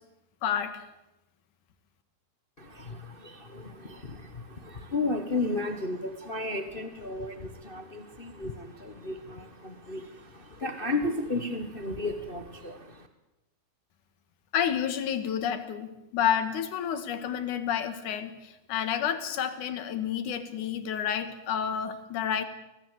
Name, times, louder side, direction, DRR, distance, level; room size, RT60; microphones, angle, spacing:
voice 1, 0.4-0.8 14.5-22.4, left 9 dB, 75° left, 10 dB, 3.1 m, -30 dB
voice 2, 2.6-13.1, left 2 dB, 55° left, 7 dB, 0.6 m, -34 dB
25.0 x 17.5 x 8.2 m, 0.93 s
omnidirectional pair, 3.6 m